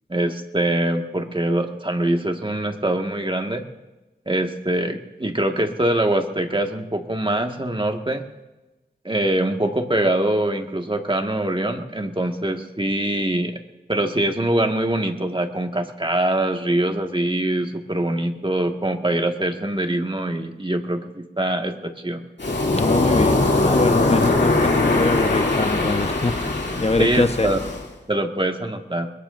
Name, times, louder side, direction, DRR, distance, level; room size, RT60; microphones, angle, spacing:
voice 1, 0.1-3.7 4.3-8.3 9.1-13.6 13.9-22.2 27.0-27.6 28.1-29.1, right 1 dB, 30° right, 4 dB, 1.7 m, -23 dB
Waves surf, 22.4-27.8, left 2 dB, 80° left, 2.6 m, -21 dB
voice 2, 22.7-26.4 26.8-27.5, left 3 dB, 35° left, 9 dB, 1.0 m, -23 dB
23.5 x 21.0 x 2.6 m, 1.1 s
wide cardioid pair, 45°, 18 cm